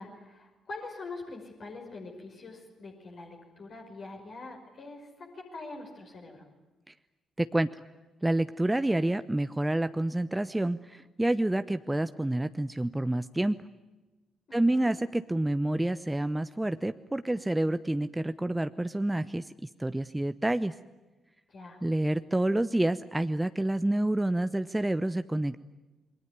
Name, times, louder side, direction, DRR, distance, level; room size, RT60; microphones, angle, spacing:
voice 1, 0.0-6.5 14.5-14.9 21.5-21.8, left 3 dB, 50° left, 0 dB, 5.6 m, -44 dB
voice 2, 7.4-7.7 8.2-13.6 14.5-19.4 19.8-20.7 21.8-25.6, right 1 dB, 10° right, 11 dB, 0.9 m, -28 dB
28.0 x 22.0 x 9.5 m, 1.1 s
figure-of-eight pair, 40°, 0 cm